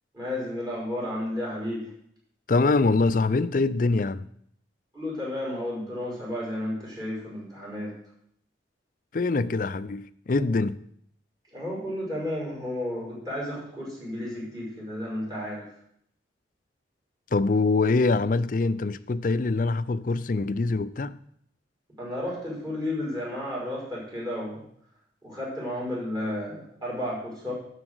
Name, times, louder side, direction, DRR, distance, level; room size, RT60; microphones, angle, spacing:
voice 1, 0.1-1.9 4.9-7.9 11.5-15.7 22.0-24.6 25.2-27.5, left 1 dB, 20° right, 5.6 m, -32 dB
voice 2, 2.5-4.3 9.1-10.8 17.3-21.2, left 3 dB, 45° left, 0.4 m, -24 dB
12.0 x 4.9 x 8.0 m
head